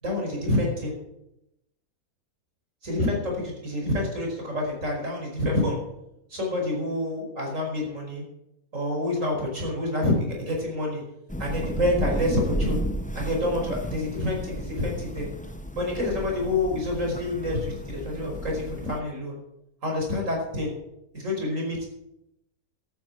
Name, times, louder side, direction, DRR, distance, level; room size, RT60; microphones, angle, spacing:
voice 1, 0.0-0.9 2.8-5.8 6.3-8.2 8.7-11.0 11.4-12.8 13.2-15.3 15.8-19.3 19.8-20.7 21.1-21.9, left 1 dB, 55° right, 0 dB, 5.5 m, -27 dB
Thunder / Rain, 11.3-19.0, equal, 10° left, 0.6 m, -33 dB
13.0 x 9.4 x 8.9 m, 0.84 s
omnidirectional pair, 1.6 m